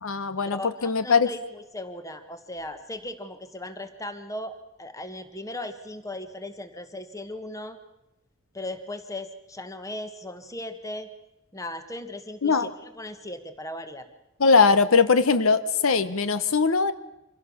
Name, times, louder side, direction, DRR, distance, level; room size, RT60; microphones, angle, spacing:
voice 1, 0.0-1.3 12.4-12.7 14.4-16.9, left 5 dB, 85° left, 13 dB, 1.0 m, -21 dB
voice 2, 0.5-7.8 8.5-11.1 11.5-14.1, left 1 dB, 15° left, 10 dB, 1.3 m, -37 dB
25.0 x 16.5 x 7.1 m, 0.96 s
head